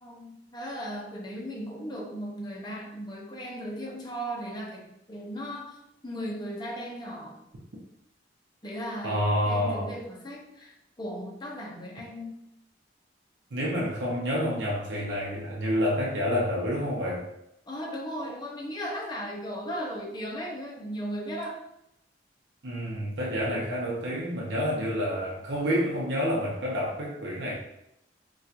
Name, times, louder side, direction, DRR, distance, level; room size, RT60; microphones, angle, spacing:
voice 1, 0.0-7.4 8.6-12.4 17.7-21.6, equal, 25° left, -2 dB, 0.6 m, -37 dB
voice 2, 9.0-9.9 13.5-17.3 22.6-27.5, equal, 85° right, -3 dB, 0.7 m, -28 dB
4.2 x 2.3 x 2.5 m, 0.81 s
head